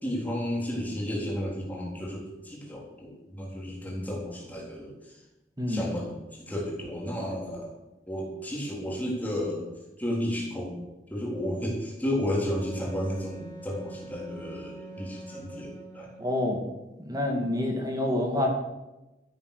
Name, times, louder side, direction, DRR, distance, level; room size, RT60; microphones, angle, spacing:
voice 1, 0.0-5.2 5.7-7.7 8.1-9.7 10.0-10.7 11.1-16.1, equal, 10° left, -3 dB, 3.7 m, -32 dB
Wind instrument woodwind instrument, 12.5-16.6, right 2 dB, 45° right, 3.7 m, -45 dB
voice 2, 16.2-16.6 17.0-18.5, left 1 dB, 20° right, 2 dB, 2.3 m, -27 dB
13.5 x 9.5 x 6.8 m, 1.0 s
head